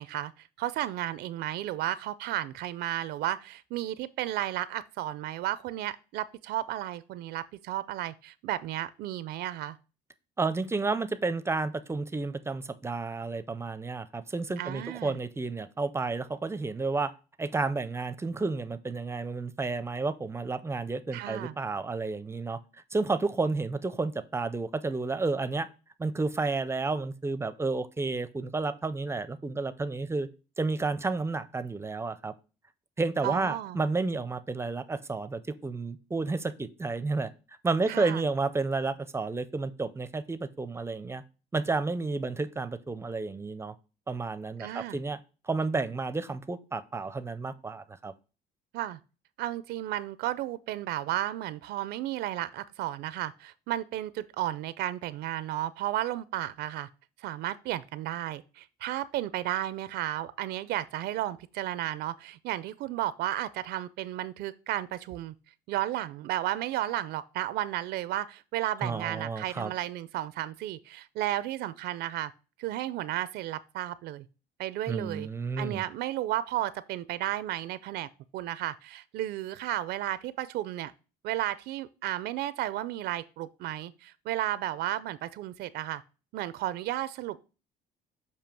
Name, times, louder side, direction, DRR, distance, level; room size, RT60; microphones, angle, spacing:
voice 1, 0.0-9.8 14.6-15.2 21.1-21.5 33.2-33.8 37.9-38.2 44.6-45.0 48.7-49.0 49.4-56.9 57.2-65.3 65.7-72.3 72.6-74.3 74.6-75.3 75.6-80.9 81.2-86.0 86.3-87.4, right 14 dB, 75° right, 0.4 m, -33 dB
voice 2, 10.4-17.1 17.4-22.6 22.9-25.7 26.0-30.3 30.6-32.3 33.0-37.3 37.6-41.2 41.5-43.7 44.1-45.2 45.4-48.1 68.8-69.7 74.9-75.8, right 3 dB, 15° right, 0.5 m, -31 dB
6.9 x 2.8 x 5.8 m
cardioid pair, 110°, 17 cm